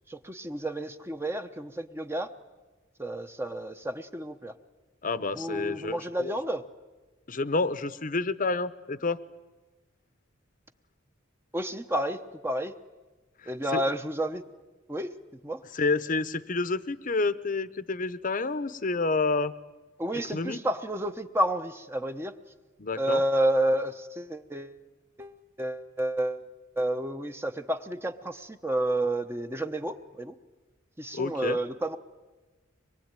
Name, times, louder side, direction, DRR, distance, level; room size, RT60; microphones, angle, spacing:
voice 1, 0.1-2.3 3.0-4.5 5.3-6.6 11.5-12.7 13.5-14.4 14.9-15.1 15.4-15.6 20.0-22.3 22.9-24.8 25.2-26.5 26.8-30.3 31.0-32.0, right 1 dB, 10° right, 8 dB, 0.9 m, -30 dB
voice 2, 5.0-6.3 7.3-9.2 13.7-13.8 15.7-19.5 20.3-20.6 22.8-23.2 31.1-31.6, left 3 dB, 40° left, 14 dB, 0.9 m, -29 dB
25.0 x 22.5 x 9.0 m, 1.2 s
head